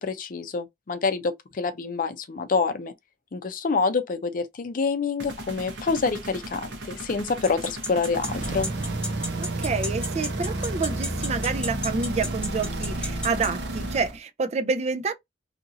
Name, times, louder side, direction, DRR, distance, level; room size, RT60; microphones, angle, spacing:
voice 1, 0.0-2.9 3.3-8.7, left 4 dB, 50° left, 0.5 m, -27 dB
sound 1, 5.2-9.1, right 1 dB, 90° right, 1.0 m, -39 dB
sound 2, 7.4-13.5, left 2 dB, 5° left, 0.9 m, -31 dB
sound 3, 8.1-14.2, right 1 dB, 65° right, 0.8 m, -30 dB
voice 2, 9.4-15.1, right 4 dB, 40° right, 0.4 m, -28 dB
2.8 x 2.5 x 2.6 m
head